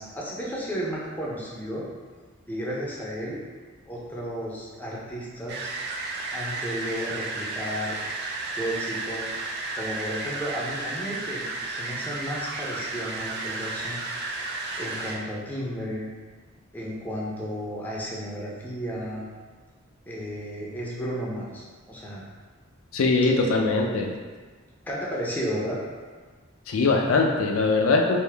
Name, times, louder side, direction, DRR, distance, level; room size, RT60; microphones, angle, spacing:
voice 1, 0.0-1.8 2.5-3.4 3.9-5.7 6.3-8.0 8.4-9.3 9.7-14.0 14.3-16.1 16.7-19.2 20.1-22.2 23.2-23.3 24.8-25.8, equal, 10° left, -5 dB, 0.5 m, -33 dB
sound 1, 5.5-15.2, right 3 dB, 50° right, 0.4 m, -33 dB
voice 2, 22.9-24.1 26.7-28.2, left 3 dB, 75° left, 1 dB, 0.4 m, -21 dB
3.5 x 2.6 x 3.3 m, 1.4 s
head